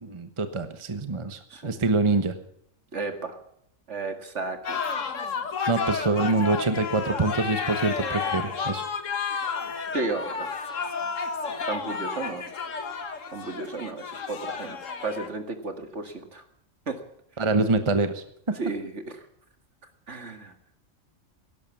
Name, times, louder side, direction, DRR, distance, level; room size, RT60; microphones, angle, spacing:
voice 1, 0.0-2.3 5.7-8.8 17.4-18.6, right 3 dB, 25° right, 9 dB, 1.1 m, -25 dB
voice 2, 2.9-3.3 3.9-4.8 9.9-10.5 11.7-12.4 13.3-14.8 15.0-16.4 16.9-17.0 18.6-19.0 20.1-20.5, right 3 dB, 60° right, 7 dB, 2.3 m, -33 dB
sound 1, 4.6-15.3, left 5 dB, 70° left, 1.8 m, -31 dB
16.5 x 12.0 x 7.2 m, 0.72 s
omnidirectional pair, 1.4 m